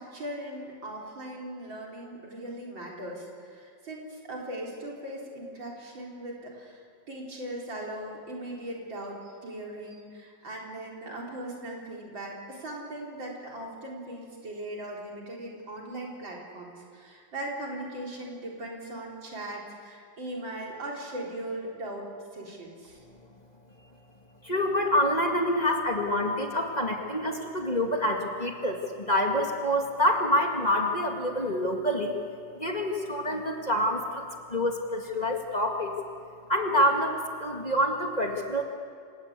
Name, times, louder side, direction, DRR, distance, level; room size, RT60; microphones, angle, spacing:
voice 1, 0.0-6.8 7.1-23.0, right 1 dB, 85° right, -2 dB, 4.7 m, -39 dB
voice 2, 24.4-32.2 32.6-34.2 34.5-35.9 36.5-38.6, equal, 20° left, 1 dB, 2.1 m, -27 dB
27.0 x 18.0 x 8.4 m, 2.2 s
omnidirectional pair, 2.0 m